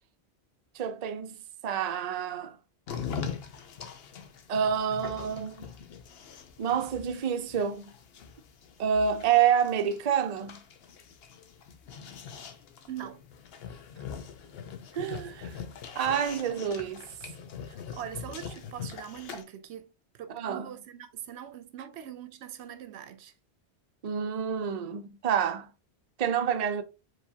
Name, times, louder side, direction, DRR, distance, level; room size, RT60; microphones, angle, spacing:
voice 1, 0.7-1.4 1.6-2.6 4.5-5.7 6.6-7.9 8.8-10.6 14.9-15.6 16.0-17.1 20.3-20.7 24.0-25.7 26.2-26.8, right 8 dB, 50° right, 0.5 m, -28 dB
sound 1, 2.9-19.4, left 6 dB, 70° left, 0.9 m, -42 dB
voice 2, 12.9-13.2 17.7-19.9 20.1-23.3, right 10 dB, 90° right, 0.9 m, -42 dB
4.7 x 3.3 x 2.7 m
omnidirectional pair, 1.1 m